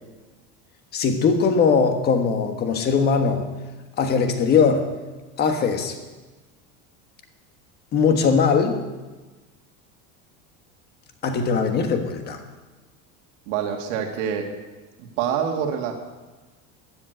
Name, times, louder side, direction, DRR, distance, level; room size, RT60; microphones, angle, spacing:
voice 1, 0.9-3.5 4.0-4.9 5.4-6.0 7.9-8.8 11.2-12.4, left 5 dB, 25° left, 6 dB, 1.4 m, -20 dB
voice 2, 13.5-14.5 15.0-15.9, right 8 dB, 75° right, 3 dB, 2.3 m, -26 dB
13.0 x 10.5 x 8.1 m, 1.2 s
cardioid pair, 175°, 37 cm